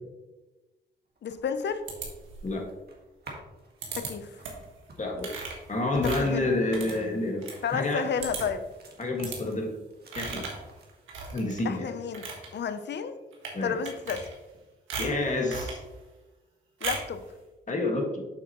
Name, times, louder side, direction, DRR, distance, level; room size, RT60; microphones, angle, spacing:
sound 1, 1.0-9.6 9.8-11.1, right 1 dB, 55° right, 1.8 m, -50 dB
voice 1, 1.2-1.8 4.0-4.3 6.2-6.5 7.6-8.6 11.6-12.3 12.5-13.1 13.6-14.2 16.8-17.3, left 7 dB, 65° left, 10 dB, 0.7 m, -31 dB
sound 2, 1.9-2.6 3.8-4.1 4.4-4.7 5.2-7.6 7.9-8.0 8.2-8.7 9.2-9.4 10.1-10.6 11.1-11.6 12.0-12.5 13.3-13.6 13.8-14.6 14.9-15.8 16.8-17.2, right 4 dB, 85° right, 1.5 m, -37 dB
voice 2, 5.0-5.3 5.7-8.1 9.0-9.7 10.2-10.5 11.3-11.9 13.5-13.8 15.0-15.8 17.7-18.3, left 2 dB, 40° left, 1 dB, 1.9 m, -29 dB
7.8 x 5.8 x 3.1 m, 1.1 s
supercardioid pair, 55°, 20 cm